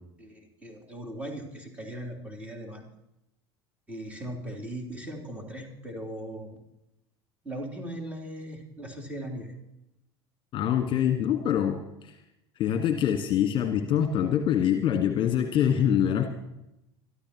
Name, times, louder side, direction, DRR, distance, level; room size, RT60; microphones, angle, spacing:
voice 1, 0.2-2.9 3.9-6.6 7.4-9.5, right 1 dB, 10° right, 1 dB, 3.3 m, -39 dB
voice 2, 10.5-12.2 12.6-16.3, left 9 dB, 40° left, 7 dB, 1.6 m, -25 dB
24.0 x 13.0 x 3.0 m, 0.85 s
figure-of-eight pair, 70°, 14 cm